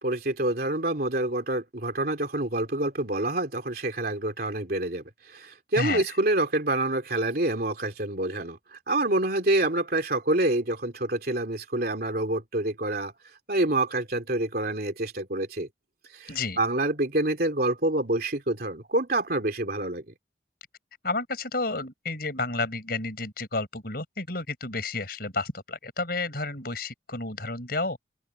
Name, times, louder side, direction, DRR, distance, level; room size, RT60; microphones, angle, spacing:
voice 1, 0.0-13.1 13.5-15.7 16.1-20.0, right 2 dB, 55° right, 3.2 m, -27 dB
voice 2, 16.3-16.6 21.0-28.0, left 3 dB, 55° left, 6.2 m, -31 dB
open air
head